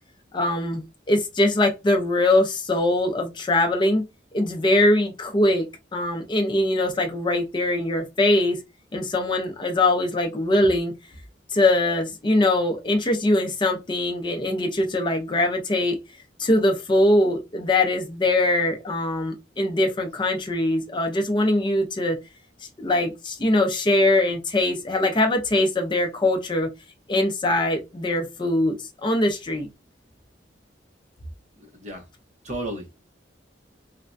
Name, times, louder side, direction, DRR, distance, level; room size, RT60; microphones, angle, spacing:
voice 1, 0.3-4.0 4.3-8.6 8.9-10.9 11.5-16.0 16.4-22.2 22.8-26.7 27.1-29.7, left 1 dB, 25° left, 0.5 m, -22 dB
voice 2, 31.6-32.0 32.4-33.1, right 1 dB, 40° right, 0.7 m, -34 dB
3.2 x 2.1 x 2.5 m
head